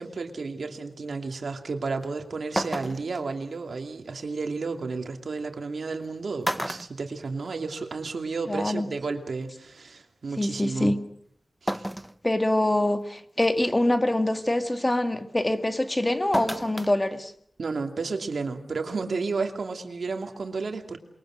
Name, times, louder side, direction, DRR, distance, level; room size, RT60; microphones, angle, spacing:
voice 1, 0.0-11.0 11.6-11.8 17.6-21.0, right 4 dB, 75° right, 2.7 m, -32 dB
sound 1, 2.0-2.1 2.6-3.2 4.8-4.9 5.9-6.1 6.4-7.8 8.2-8.3 9.5-9.6 11.7-12.2 12.7-12.8 13.4-13.7 16.3-16.9 17.3-17.4, equal, 5° right, 0.9 m, -32 dB
voice 2, 8.5-8.9 10.4-11.0 12.2-17.3, left 1 dB, 20° left, 1.9 m, -24 dB
28.0 x 23.0 x 6.5 m
wide cardioid pair, 75°, 0 cm